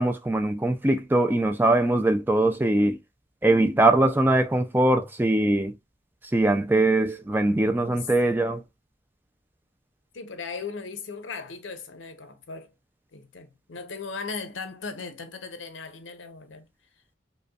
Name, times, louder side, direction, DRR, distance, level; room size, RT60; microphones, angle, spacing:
voice 1, 0.0-3.0 3.4-5.8 6.2-8.6, right 2 dB, 10° right, 0.3 m, -22 dB
voice 2, 7.8-8.3 10.1-12.7 13.1-16.7, left 4 dB, 85° left, 0.8 m, -38 dB
5.1 x 2.2 x 2.3 m
head